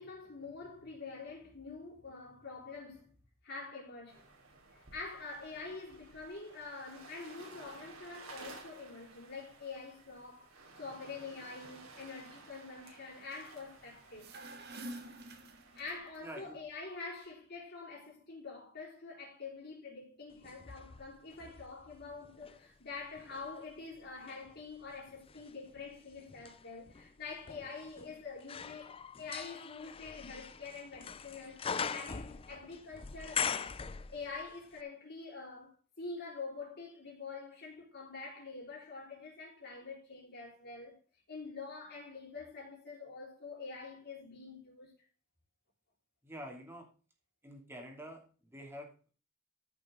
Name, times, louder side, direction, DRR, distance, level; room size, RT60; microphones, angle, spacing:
voice 1, 0.0-3.1 3.4-4.2 4.7-14.4 15.8-33.8 34.1-41.0 41.3-44.9, left 4 dB, 50° left, 4.6 m, -46 dB
sound 1, 4.1-16.0, right 3 dB, 90° right, 3.2 m, -55 dB
sound 2, 14.2-16.2, right 1 dB, 50° right, 1.6 m, -47 dB
voice 2, 16.2-16.6 46.2-46.9 47.4-49.1, equal, 10° right, 2.8 m, -47 dB
sound 3, 20.4-22.6 23.2-34.5 34.8-34.9, left 6 dB, 25° left, 0.5 m, -42 dB
14.0 x 6.5 x 3.8 m
head